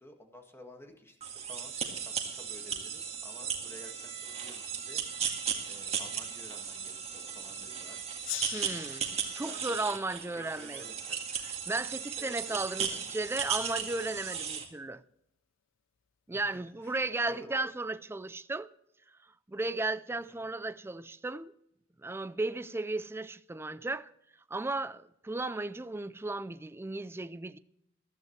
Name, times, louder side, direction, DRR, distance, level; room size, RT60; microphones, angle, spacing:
voice 1, 0.0-8.0 9.4-10.0 10.3-11.3 12.2-12.6 12.9-13.1 16.3-17.5 20.1-20.5, left 1 dB, 15° left, 1.8 m, -53 dB
sound 1, 1.2-14.7, right 7 dB, 35° right, 1.8 m, -36 dB
Gong, 8.2-11.4, left 14 dB, 75° left, 0.5 m, -44 dB
voice 2, 8.5-9.0 9.3-10.8 11.7-15.0 16.3-18.7 19.5-21.5 22.0-24.1 24.5-27.6, right 2 dB, 10° right, 0.4 m, -35 dB
14.5 x 13.5 x 3.2 m
head